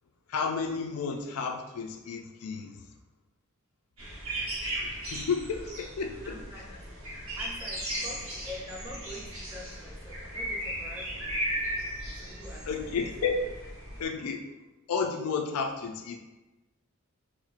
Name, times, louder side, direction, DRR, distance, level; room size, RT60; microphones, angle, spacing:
voice 1, 0.3-2.7 4.8-6.2 12.7-13.5 14.0-14.4 14.9-16.2, left 5 dB, 90° left, 4 dB, 0.4 m, -31 dB
sound 1, 4.0-14.0, right 1 dB, 85° right, 1.1 m, -36 dB
voice 2, 6.2-6.6 7.3-11.7 12.1-12.9, left 1 dB, 10° right, -4 dB, 0.6 m, -45 dB
4.3 x 2.1 x 2.5 m, 1.1 s
head